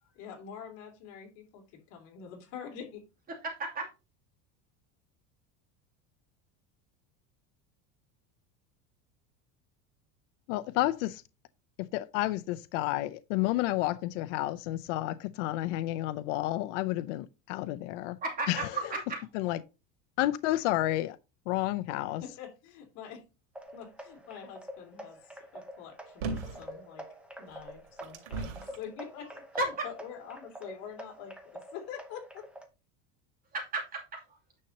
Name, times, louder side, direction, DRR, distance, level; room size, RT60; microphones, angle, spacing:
voice 1, 0.0-3.0 22.2-23.2 23.7-27.0 27.4-32.4, left 8 dB, 55° left, 3.0 m, -46 dB
voice 2, 3.4-3.9 18.2-19.2 29.6-29.8 33.5-34.0, right 2 dB, 25° right, 2.7 m, -33 dB
voice 3, 10.5-11.2 11.8-18.2 18.5-18.7 19.3-19.6 20.2-21.2 21.5-22.2, left 16 dB, 80° left, 0.6 m, -30 dB
sound 1, 23.5-32.7, equal, 5° right, 0.8 m, -47 dB
sound 2, 26.2-26.7 27.5-28.8 29.6-29.7, right 4 dB, 80° right, 2.8 m, -37 dB
9.6 x 6.6 x 2.8 m
cardioid pair, 170°, 36 cm